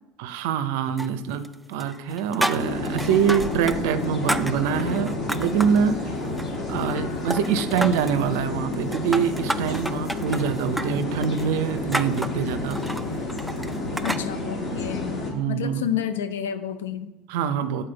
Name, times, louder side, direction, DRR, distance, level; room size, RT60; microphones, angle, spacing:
voice 1, 0.2-6.1 6.7-12.8 15.3-15.9 17.3-17.9, right 7 dB, 75° right, 10 dB, 0.5 m, -25 dB
sound 1, 1.0-1.5 1.8-3.8 4.0-5.8 6.2-7.0 7.3-8.2 8.7-14.3, right 1 dB, 5° right, 0.3 m, -31 dB
sound 2, 2.5-15.3, left 2 dB, 40° left, 1.9 m, -30 dB
voice 2, 14.0-15.2 15.5-17.1, left 9 dB, 85° left, 10 dB, 0.5 m, -30 dB
7.7 x 4.0 x 3.9 m, 0.93 s
hypercardioid pair, 80°, 0 cm